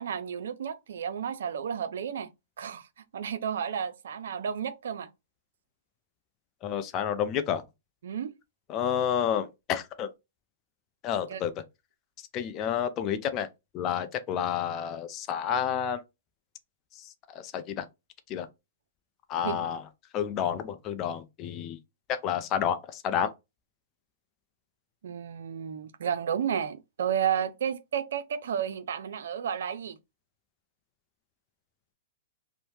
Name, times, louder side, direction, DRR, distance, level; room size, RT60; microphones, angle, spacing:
voice 1, 0.0-2.3 2.6-2.9 3.1-5.1 8.0-8.3 11.3-11.4 19.4-19.6 25.0-30.0, right 8 dB, 75° right, 0.3 m, -32 dB
voice 2, 6.6-7.6 8.7-10.1 11.0-11.6 12.3-13.5 13.7-16.0 16.9-17.9 18.3-18.5 19.3-19.8 20.1-21.8 22.1-23.3, left 8 dB, 35° left, 0.4 m, -30 dB
2.7 x 2.0 x 3.1 m
hypercardioid pair, 125°, 0 cm